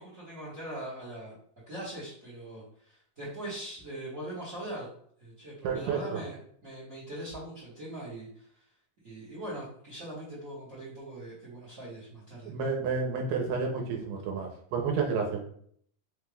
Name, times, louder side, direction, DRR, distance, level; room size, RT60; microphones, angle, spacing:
voice 1, 0.0-1.3 1.7-4.9 5.2-6.4 6.6-8.5 9.0-12.5, right 1 dB, 75° right, -8 dB, 0.7 m, -41 dB
voice 2, 5.6-6.2 12.5-15.4, right 5 dB, 90° right, 1 dB, 2.3 m, -30 dB
5.4 x 2.3 x 3.3 m, 0.62 s
omnidirectional pair, 3.9 m